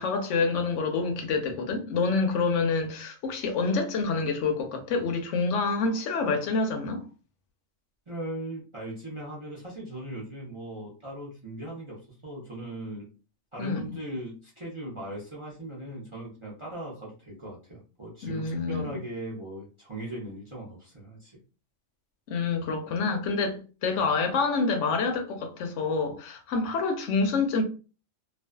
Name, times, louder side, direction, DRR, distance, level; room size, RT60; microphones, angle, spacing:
voice 1, 0.0-7.1 13.6-13.9 18.2-18.9 22.3-27.6, left 4 dB, 75° left, 0.9 m, -27 dB
voice 2, 8.1-13.1 13.5-21.4, right 1 dB, 35° right, 0.5 m, -39 dB
2.5 x 2.3 x 2.2 m
omnidirectional pair, 1.3 m